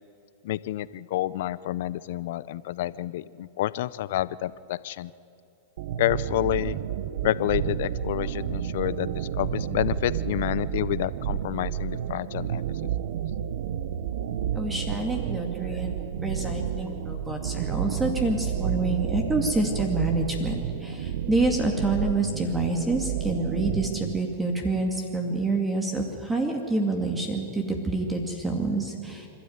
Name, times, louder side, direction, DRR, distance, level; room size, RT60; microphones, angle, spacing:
voice 1, 0.4-5.1 6.0-6.8 7.2-12.6 13.1-13.2, left 14 dB, 65° left, 18 dB, 0.6 m, -29 dB
sound 1, 5.8-24.2, right 9 dB, 70° right, 0.9 m, -31 dB
voice 2, 14.5-29.3, right 2 dB, 10° right, 3 dB, 2.4 m, -27 dB
26.0 x 13.0 x 9.6 m, 2.8 s
hypercardioid pair, 120°, 0 cm